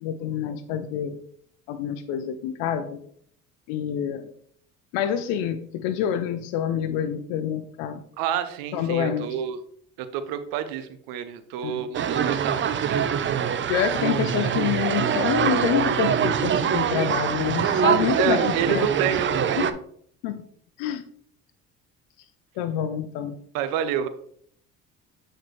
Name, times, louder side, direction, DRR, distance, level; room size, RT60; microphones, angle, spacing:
voice 1, 0.0-1.2 1.7-3.0 3.7-4.3 4.9-8.0 8.7-9.3 11.6-11.8 13.7-18.9 20.2-20.4 20.8-21.0 22.6-23.3, left 9 dB, 85° left, 8 dB, 0.6 m, -27 dB
voice 2, 8.2-9.6 10.0-13.1 18.2-19.7 23.5-24.1, right 9 dB, 80° right, 11 dB, 0.7 m, -28 dB
sound 1, 11.9-19.7, right 8 dB, 35° right, 0.6 m, -24 dB
7.9 x 4.4 x 3.2 m, 0.62 s
supercardioid pair, 80°, 34 cm